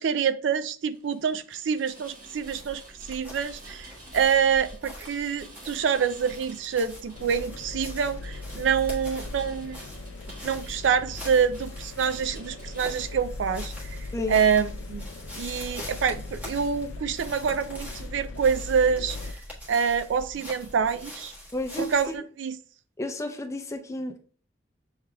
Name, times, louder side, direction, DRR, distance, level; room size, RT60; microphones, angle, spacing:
voice 1, 0.0-2.8 3.1-9.8 10.4-13.7 14.3-15.0 15.4-19.2 19.7-21.3 21.8-22.6, right 7 dB, 70° right, 12 dB, 0.4 m, -26 dB
Rain, 0.9-13.2, right 1 dB, 45° right, 1.3 m, -50 dB
sound 1, 2.3-22.2, left 1 dB, 10° right, 1.3 m, -44 dB
sound 2, 7.1-19.3, left 2 dB, 90° left, 0.4 m, -39 dB
voice 2, 14.1-14.4 21.5-22.2 23.0-24.2, left 1 dB, 15° left, 5 dB, 0.5 m, -32 dB
7.1 x 3.3 x 2.2 m, 0.42 s
head